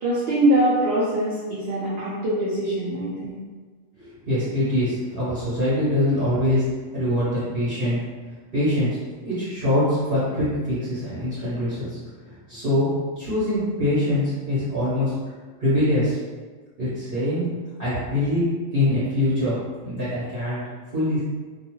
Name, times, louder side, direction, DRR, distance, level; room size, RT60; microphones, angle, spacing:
voice 1, 0.0-3.4, right 1 dB, 60° right, -6 dB, 0.7 m, -23 dB
voice 2, 4.0-8.0 8.5-12.0 12.5-15.1 15.6-16.2 16.8-17.5 17.8-19.6 19.8-20.6 20.9-21.2, left 1 dB, 45° right, -12 dB, 1.0 m, -23 dB
2.3 x 2.3 x 3.0 m, 1.4 s
omnidirectional pair, 1.4 m